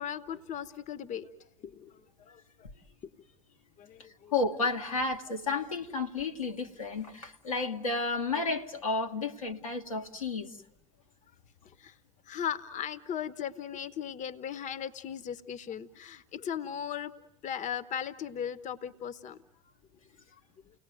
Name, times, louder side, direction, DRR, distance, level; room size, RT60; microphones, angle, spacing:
voice 1, 0.0-1.3 1.6-2.7 3.8-4.3 11.6-12.0 12.3-17.1 17.4-19.4 20.3-20.4, left 9 dB, 45° left, 1.0 m, -38 dB
voice 2, 4.3-10.5, left 3 dB, 85° left, 1.3 m, -32 dB
30.0 x 18.5 x 9.1 m
figure-of-eight pair, 55°, 17 cm